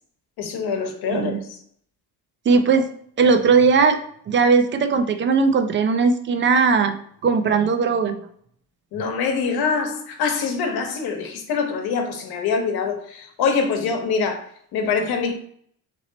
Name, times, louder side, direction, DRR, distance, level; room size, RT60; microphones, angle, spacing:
voice 1, 0.4-1.4 8.9-14.5 14.7-15.3, left 5 dB, 80° left, 1.0 m, -24 dB
voice 2, 2.5-2.9 3.2-4.0 4.3-6.9 7.2-8.2, right 5 dB, 30° right, 0.4 m, -18 dB
4.0 x 3.0 x 3.9 m
cardioid pair, 160°, 37 cm